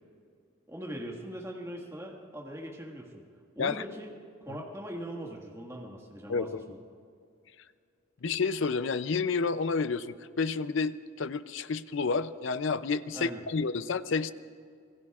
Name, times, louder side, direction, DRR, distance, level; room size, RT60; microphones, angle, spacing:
voice 1, 0.7-3.2 3.6-4.1 4.4-6.8 13.1-13.4, equal, 15° right, -1 dB, 1.7 m, -41 dB
voice 2, 6.3-6.6 8.2-14.3, left 4 dB, 60° left, 13 dB, 0.5 m, -30 dB
26.5 x 19.5 x 2.5 m, 2.3 s
head